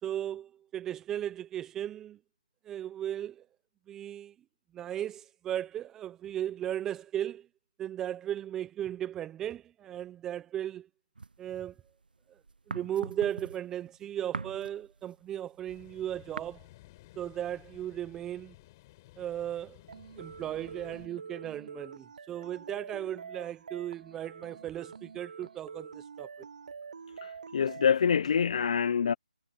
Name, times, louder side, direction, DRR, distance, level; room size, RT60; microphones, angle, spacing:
voice 1, 0.0-2.2 2.6-3.4 3.9-4.3 4.7-7.5 7.8-10.9 11.4-11.8 12.3-12.4 12.7-16.7 17.2-18.5 19.2-19.8 20.2-26.3, right 11 dB, 10° right, 0.7 m, -36 dB
sound 1, 11.2-12.1 12.4-16.4, right 4 dB, 80° right, 0.8 m, -42 dB
sound 2, 15.7-21.1, left 19 dB, 25° left, 4.3 m, -56 dB
sound 3, 19.9-27.9, right 5 dB, 55° right, 0.9 m, -46 dB
voice 2, 27.2-29.1, left 7 dB, 50° left, 0.6 m, -26 dB
figure-of-eight pair, 160°, 5 cm